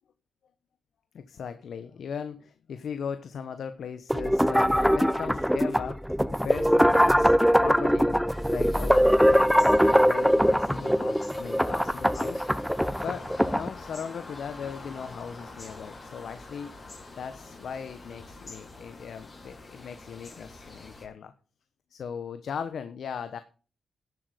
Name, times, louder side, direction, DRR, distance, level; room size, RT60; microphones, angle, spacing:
voice 1, 1.1-6.0 6.3-8.1 8.5-12.4 13.0-16.7 17.2-21.3 21.9-23.4, left 7 dB, 75° left, 11 dB, 1.1 m, -38 dB
sound 1, 4.1-13.7, equal, ahead, 0.8 m, -22 dB
sound 2, 8.3-21.1, left 2 dB, 40° left, 5.3 m, -45 dB
11.5 x 7.7 x 5.2 m, 0.36 s
cardioid pair, 65°, 0 cm